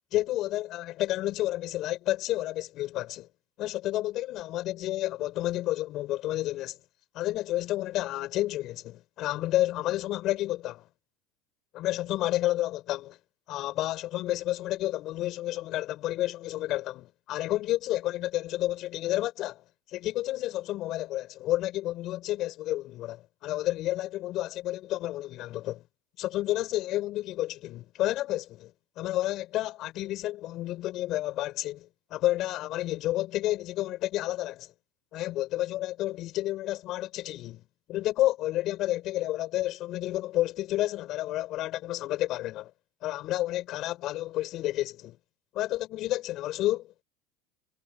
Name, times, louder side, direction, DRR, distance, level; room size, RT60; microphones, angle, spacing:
voice 1, 0.1-3.3 3.6-6.8 7.1-10.8 11.7-13.2 13.5-19.6 19.9-25.8 26.2-28.7 29.0-34.7 35.1-37.6 37.9-42.7 43.0-45.2 45.5-47.0, left 15 dB, 55° left, 5.3 m, -30 dB
supercardioid pair, 100°, 0 cm